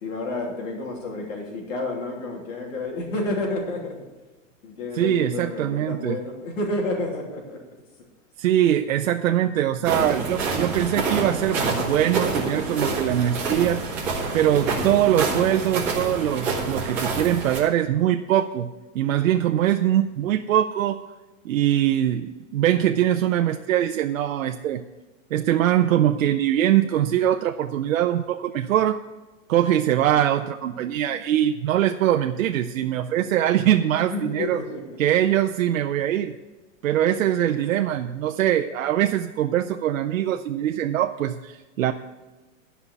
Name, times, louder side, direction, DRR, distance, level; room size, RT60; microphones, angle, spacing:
voice 1, 0.0-4.0 4.6-7.6 34.1-35.0 37.4-37.6, left 2 dB, 70° left, 0 dB, 3.0 m, -30 dB
voice 2, 4.9-6.2 8.4-13.9 14.3-18.7 18.9-21.0 21.4-24.8 25.3-29.0 29.5-34.6 35.0-36.3 36.8-41.9, right 11 dB, 85° right, 6 dB, 0.6 m, -22 dB
sound 1, 9.8-17.6, right 3 dB, 5° right, 0.5 m, -27 dB
11.0 x 5.6 x 8.1 m, 1.2 s
supercardioid pair, 180°, 40 cm